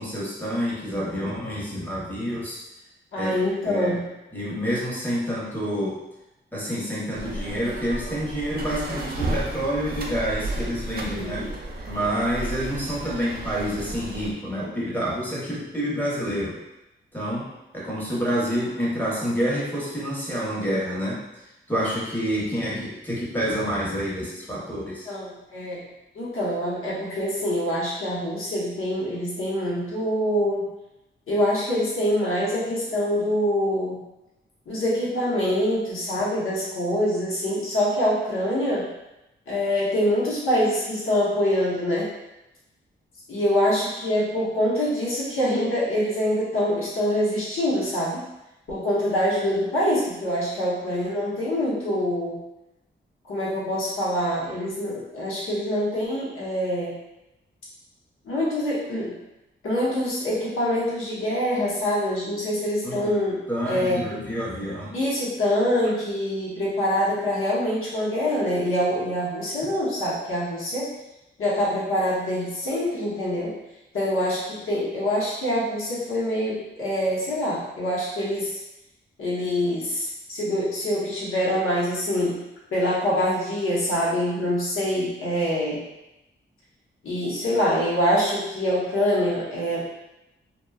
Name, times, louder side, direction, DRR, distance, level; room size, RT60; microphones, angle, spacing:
voice 1, 0.0-2.6 3.2-3.4 3.7-4.0 4.3-6.0 6.5-11.5 11.9-16.6 17.1-21.2 21.7-25.1 62.8-63.1 63.5-65.0, equal, 10° left, -6 dB, 0.9 m, -28 dB
voice 2, 3.1-4.1 10.9-11.5 25.0-25.9 26.1-30.7 31.3-34.0 34.7-38.9 39.5-42.1 43.3-48.2 48.7-52.4 53.3-57.0 58.2-59.2 59.6-63.4 63.7-64.2 64.9-70.9 71.4-73.5 73.9-78.6 79.2-82.4 82.7-85.8 87.0-89.8, equal, 90° left, -6 dB, 0.9 m, -25 dB
sound 1, 7.1-14.3, right 2 dB, 50° right, 0.4 m, -33 dB
2.9 x 2.2 x 2.2 m, 0.93 s
wide cardioid pair, 105°, 20 cm